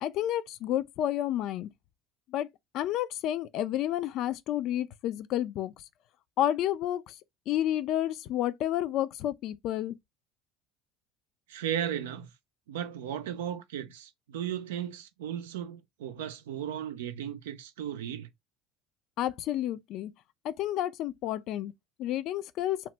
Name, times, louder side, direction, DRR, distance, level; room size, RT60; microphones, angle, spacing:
voice 1, 0.0-1.7 2.3-2.5 2.7-5.7 6.4-7.2 7.5-10.0 19.2-20.1 20.4-21.7 22.0-22.8, left 12 dB, 60° left, 0.3 m, -30 dB
voice 2, 11.5-12.3 12.7-18.3, right 10 dB, 80° right, 0.4 m, -35 dB
2.8 x 2.1 x 3.2 m
hypercardioid pair, 75°, 0 cm